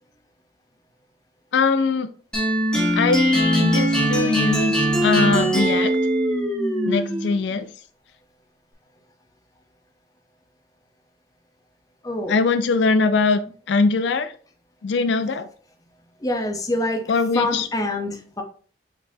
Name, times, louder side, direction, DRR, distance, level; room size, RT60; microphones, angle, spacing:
voice 1, 1.5-2.1 2.9-6.0 6.9-7.7 12.3-13.4 13.7-14.3 14.8-15.5 17.1-17.7, left 4 dB, 75° left, 11 dB, 0.4 m, -21 dB
sound 1, 2.3-7.4, right 1 dB, 5° left, 1.2 m, -21 dB
voice 2, 16.2-18.4, left 2 dB, 20° left, 4 dB, 0.7 m, -26 dB
4.8 x 3.9 x 2.7 m, 0.44 s
head